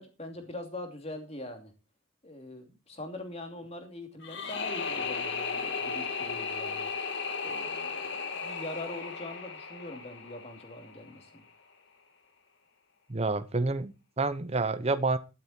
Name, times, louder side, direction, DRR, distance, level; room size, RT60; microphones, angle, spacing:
voice 1, 0.0-1.7 2.2-6.9 7.4-11.4, left 1 dB, 30° left, 5 dB, 2.9 m, -42 dB
sound 1, 4.2-11.2, left 5 dB, 55° left, 2.6 m, -35 dB
voice 2, 13.1-15.2, right 3 dB, 30° right, 13 dB, 0.8 m, -29 dB
12.5 x 12.0 x 4.4 m, 0.29 s
head